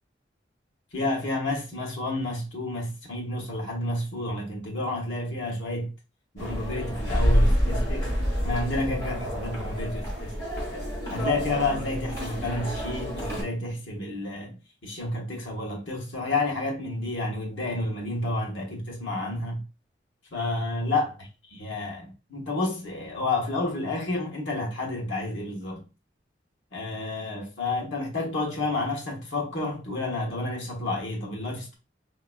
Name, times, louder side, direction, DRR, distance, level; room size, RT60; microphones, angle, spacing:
voice 1, 0.9-5.9 6.3-8.1 8.4-10.3 11.1-19.6 20.3-25.8 26.7-31.8, left 2 dB, 85° left, 1.3 m, -30 dB
sound 1, 6.4-13.4, equal, 20° left, 2.0 m, -27 dB
5.1 x 2.9 x 2.3 m
head